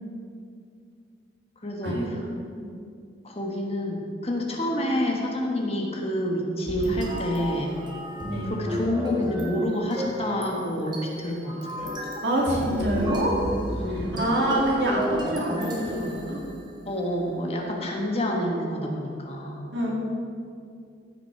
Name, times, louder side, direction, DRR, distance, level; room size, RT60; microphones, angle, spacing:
voice 1, 1.6-2.2 3.2-7.8 8.4-11.9 13.6-14.2 16.8-19.7, equal, 35° left, 0 dB, 1.3 m, -28 dB
sound 1, 6.7-17.0, equal, 25° right, 1.6 m, -33 dB
voice 2, 8.2-8.5 12.2-13.4 14.1-16.4 19.7-19.9, right 1 dB, 70° right, -3 dB, 2.2 m, -25 dB
14.5 x 6.0 x 4.5 m, 2.4 s
head